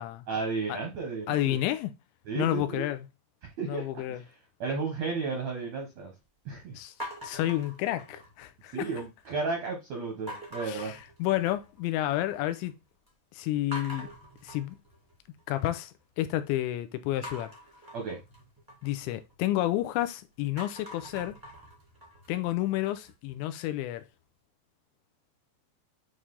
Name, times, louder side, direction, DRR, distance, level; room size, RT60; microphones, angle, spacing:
voice 1, 0.3-1.6 2.2-2.9 3.4-4.3 4.6-6.1 6.4-6.8 8.7-10.9 17.9-18.2, right 4 dB, 75° right, 1.6 m, -33 dB
voice 2, 1.3-1.9 2.4-3.0 3.7-4.2 6.7-6.9 7.2-8.9 10.6-12.7 13.3-14.1 14.4-14.8 15.5-17.5 18.8-21.4 22.3-24.0, left 14 dB, 90° left, 3.0 m, -30 dB
sound 1, 7.0-8.5 8.9-9.4 10.3-11.8 12.1-12.7 13.1-13.2 13.7-15.8 17.2-20.0 20.4-23.3, equal, 15° right, 0.8 m, -45 dB
8.6 x 3.3 x 3.7 m
omnidirectional pair, 5.2 m